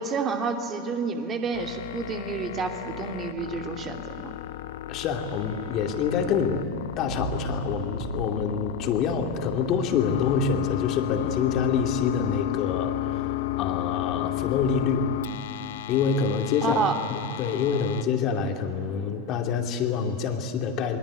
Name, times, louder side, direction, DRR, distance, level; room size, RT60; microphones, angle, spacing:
voice 1, 0.0-4.3 16.6-16.9, right 5 dB, 25° right, 4 dB, 2.6 m, -29 dB
sound 1, 1.5-18.0, left 15 dB, 55° left, 0.7 m, -33 dB
sound 2, 4.4-12.5 12.8-12.9, right 1 dB, 80° right, 3.1 m, -39 dB
voice 2, 4.9-6.6 7.0-15.1 15.9-16.8 17.1-21.0, left 6 dB, 35° left, 4 dB, 2.6 m, -27 dB
27.5 x 22.5 x 9.7 m, 2.9 s
figure-of-eight pair, 90°, 0 cm